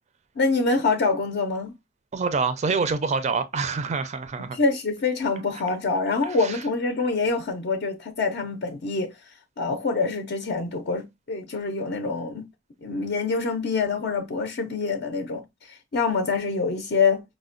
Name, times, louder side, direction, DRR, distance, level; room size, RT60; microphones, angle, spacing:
voice 1, 0.4-1.7 4.5-9.1 9.6-12.5 12.8-17.2, left 4 dB, 55° left, 0.5 m, -25 dB
voice 2, 2.1-4.6 6.2-6.6, right 4 dB, 35° right, 0.4 m, -26 dB
4.9 x 2.1 x 2.4 m
head